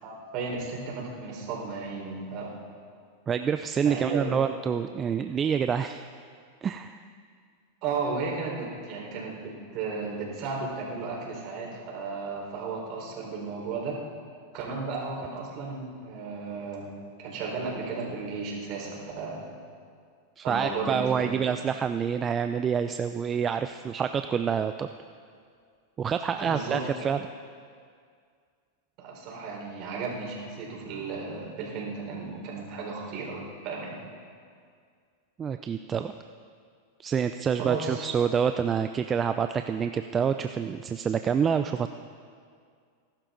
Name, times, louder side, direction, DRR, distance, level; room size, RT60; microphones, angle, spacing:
voice 1, 0.0-2.5 3.8-4.4 7.8-14.0 14.5-16.9 17.2-19.5 20.4-21.6 26.4-27.1 29.0-34.0 37.6-38.1, right 4 dB, 50° right, -2 dB, 4.4 m, -34 dB
voice 2, 3.3-6.0 6.6-7.0 20.4-24.9 26.0-27.2 35.4-36.1 37.0-41.9, right 7 dB, 25° right, 9 dB, 0.4 m, -27 dB
19.5 x 12.0 x 3.9 m, 2.1 s
hypercardioid pair, 120°, 0 cm